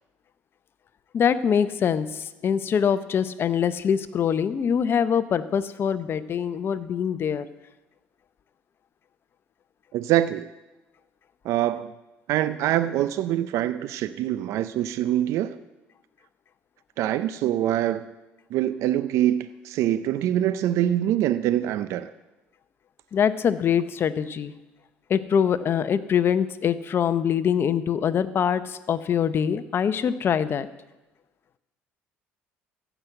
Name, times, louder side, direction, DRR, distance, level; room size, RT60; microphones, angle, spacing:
voice 1, 1.1-7.4 23.1-24.5 25.1-30.7, left 8 dB, 45° left, 12 dB, 0.8 m, -24 dB
voice 2, 9.9-10.5 11.4-11.9 12.3-15.6 17.0-18.1 18.5-22.1, right 12 dB, 70° right, 13 dB, 0.5 m, -24 dB
14.5 x 6.1 x 7.9 m, 1.1 s
supercardioid pair, 80°, 5 cm